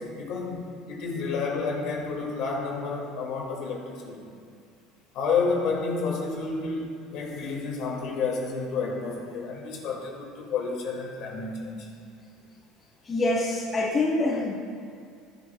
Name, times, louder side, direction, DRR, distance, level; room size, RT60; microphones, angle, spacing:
voice 1, 0.0-4.3 5.1-11.9, left 4 dB, 55° left, -1 dB, 2.5 m, -30 dB
voice 2, 13.0-14.5, left 2 dB, 20° left, -6 dB, 1.5 m, -25 dB
17.0 x 11.0 x 2.5 m, 2.4 s
cardioid pair, 155°, 0 cm